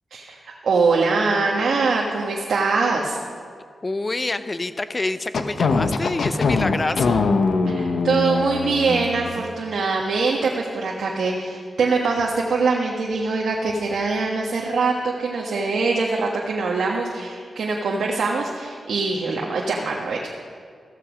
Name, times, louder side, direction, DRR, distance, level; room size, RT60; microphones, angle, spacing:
voice 1, 0.1-3.2 7.7-20.2, right 4 dB, 85° right, -1 dB, 1.4 m, -23 dB
voice 2, 3.8-7.2, left 2 dB, 30° left, 11 dB, 0.7 m, -27 dB
sound 1, 5.3-9.5, left 4 dB, 75° left, 1.1 m, -22 dB
15.0 x 14.0 x 5.1 m, 2.1 s
wide cardioid pair, 100°, 0 cm